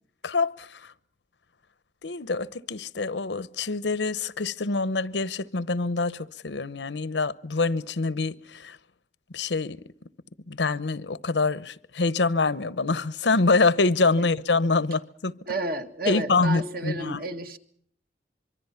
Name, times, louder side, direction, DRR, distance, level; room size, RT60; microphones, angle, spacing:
voice 1, 0.2-0.8 2.0-8.8 9.3-9.8 10.5-15.3 16.1-17.2, left 3 dB, 90° left, 0.9 m, -25 dB
voice 2, 15.5-17.6, right 2 dB, 60° right, 2.0 m, -31 dB
25.0 x 24.0 x 5.7 m
head